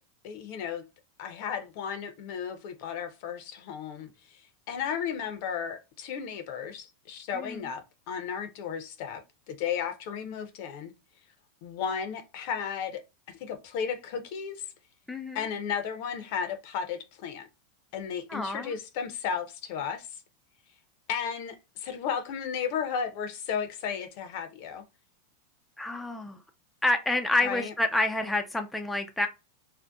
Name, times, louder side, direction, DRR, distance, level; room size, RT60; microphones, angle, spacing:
voice 1, 0.2-0.8 1.2-4.1 4.7-9.2 9.5-10.9 11.6-13.0 13.3-14.6 15.3-17.5 17.9-20.1 21.1-24.8 27.4-27.7, left 7 dB, 55° left, 0.6 m, -34 dB
voice 2, 7.3-7.7 15.1-15.4 18.3-18.7 25.8-26.4 26.8-29.3, left 2 dB, 5° left, 0.3 m, -28 dB
2.6 x 2.1 x 2.3 m
supercardioid pair, 125°, 0 cm